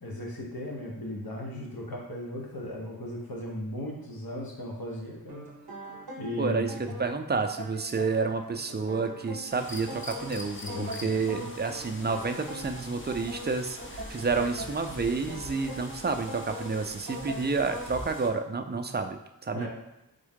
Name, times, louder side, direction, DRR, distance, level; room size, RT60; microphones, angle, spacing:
voice 1, 0.0-5.5 6.2-7.0 10.5-11.5 19.5-19.7, left 1 dB, 70° left, -2 dB, 1.2 m, -36 dB
sound 1, 5.3-18.1, right 1 dB, 85° right, 0.8 m, -42 dB
voice 2, 6.4-6.7 7.0-19.2 19.4-19.7, right 4 dB, 30° right, 6 dB, 0.4 m, -30 dB
sound 2, 9.5-18.3, left 1 dB, 35° left, 0.6 m, -44 dB
3.6 x 3.5 x 3.6 m, 0.91 s
wide cardioid pair, 50°, 37 cm